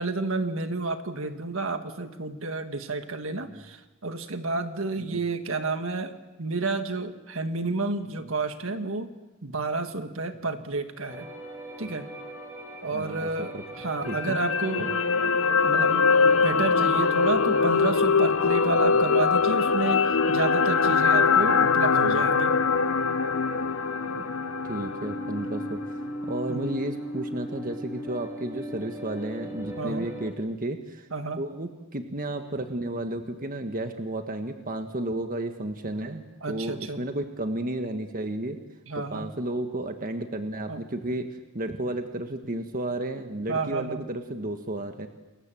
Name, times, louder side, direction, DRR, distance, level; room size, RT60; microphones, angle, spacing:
voice 1, 0.0-6.1 6.4-9.1 9.4-11.3 11.8-12.1 12.8-14.9 15.6-22.5 26.5-26.8 29.8-30.1 31.1-31.4 36.4-37.1 38.9-39.3 40.7-40.8 43.5-44.0, right 3 dB, 65° right, 7 dB, 1.9 m, -30 dB
sound 1, 11.1-30.3, equal, 15° right, 4.0 m, -40 dB
voice 2, 12.9-13.6 14.1-14.4 22.0-22.2 24.1-24.2 24.6-31.1 31.4-38.6 39.1-41.3 41.5-45.1, right 1 dB, 40° right, 6 dB, 1.5 m, -32 dB
sound 2, 14.0-26.4 26.7-26.9, left 5 dB, 65° left, 0.9 m, -23 dB
28.5 x 22.0 x 7.7 m, 1.1 s
head